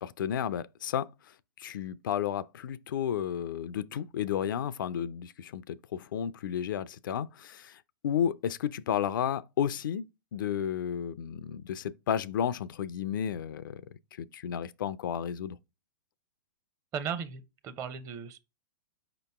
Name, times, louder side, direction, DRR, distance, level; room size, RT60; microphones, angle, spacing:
voice 1, 0.0-1.1 1.6-13.8 14.2-15.6, left 9 dB, 70° left, 0.4 m, -32 dB
voice 2, 16.9-18.4, right 6 dB, 25° right, 0.7 m, -36 dB
5.1 x 2.9 x 3.4 m
hypercardioid pair, 120°, 11 cm